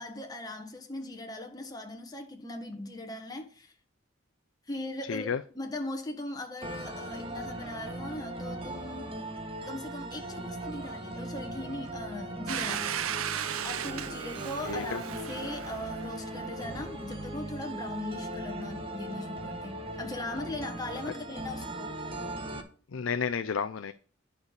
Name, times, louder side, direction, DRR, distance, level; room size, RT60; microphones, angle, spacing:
voice 1, 0.0-3.7 4.7-9.1 9.6-13.1 13.6-22.0, left 2 dB, 20° left, 1.5 m, -39 dB
voice 2, 5.1-5.4 14.7-15.0 22.5-22.6 22.9-23.9, left 6 dB, 70° left, 0.5 m, -31 dB
sound 1, 6.6-22.6, right 1 dB, 25° right, 1.4 m, -39 dB
Domestic sounds home sounds, 12.5-17.1, right 9 dB, 90° right, 0.6 m, -36 dB
10.5 x 4.9 x 6.6 m
head